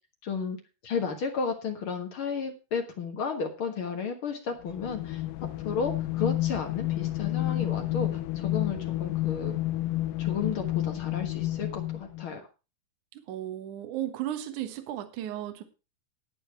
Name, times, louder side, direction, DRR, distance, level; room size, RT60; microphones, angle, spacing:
voice 1, 0.2-0.6 0.8-5.2 5.6-9.5 10.2-12.4, left 5 dB, 70° left, 4 dB, 1.2 m, -33 dB
sound 1, 4.6-12.3, left 15 dB, 85° left, 2.9 m, -30 dB
voice 2, 13.1-15.6, right 12 dB, 60° right, 7 dB, 2.3 m, -35 dB
12.5 x 8.8 x 4.6 m, 0.31 s
omnidirectional pair, 4.6 m